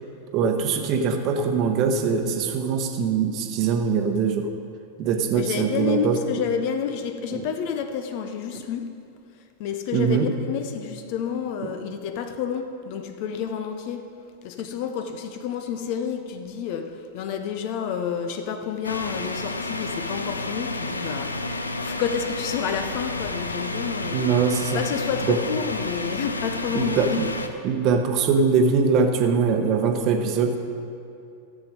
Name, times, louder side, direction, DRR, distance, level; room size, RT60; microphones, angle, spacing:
voice 1, 0.3-4.5 5.0-6.2 7.3-7.4 9.9-10.3 24.1-24.8 25.3-25.4 26.7-27.3 27.6-30.6, right 5 dB, 40° right, 5 dB, 1.0 m, -22 dB
voice 2, 5.3-8.9 9.6-14.1 14.4-27.2, left 7 dB, 45° left, 7 dB, 0.8 m, -30 dB
sound 1, 18.8-27.5, left 2 dB, 80° left, 0.6 m, -30 dB
13.0 x 7.7 x 4.9 m, 2.5 s
figure-of-eight pair, 90°, 0 cm